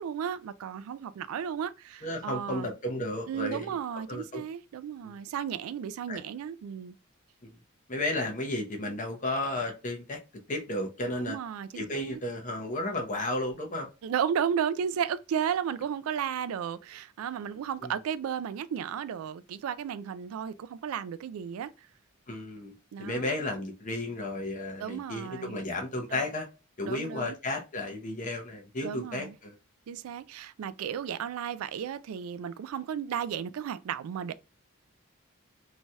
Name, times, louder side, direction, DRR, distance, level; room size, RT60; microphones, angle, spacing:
voice 1, 0.0-2.7 3.3-6.9 11.2-12.2 14.0-21.7 22.9-23.3 24.8-25.6 26.1-26.2 26.9-27.4 28.8-29.3 29.9-34.3, right 8 dB, 85° right, 0.3 m, -34 dB
voice 2, 2.0-3.7 4.1-4.4 5.0-5.1 6.1-6.2 7.4-7.5 7.9-10.2 10.5-11.4 11.7-13.9 17.8-17.9 22.3-26.5 26.8-29.5, left 1 dB, 40° left, 0.8 m, -33 dB
3.1 x 2.7 x 2.2 m
head